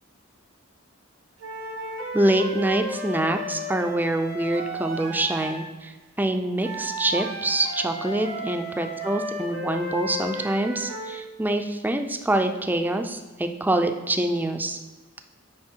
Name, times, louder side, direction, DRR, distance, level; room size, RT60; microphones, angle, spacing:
sound 1, 1.4-5.7 6.6-11.2, right 1 dB, 85° right, 1.7 m, -34 dB
voice 1, 2.1-5.9 6.2-14.8, right 1 dB, 10° right, 6 dB, 0.4 m, -25 dB
9.6 x 4.0 x 4.5 m, 1.2 s
head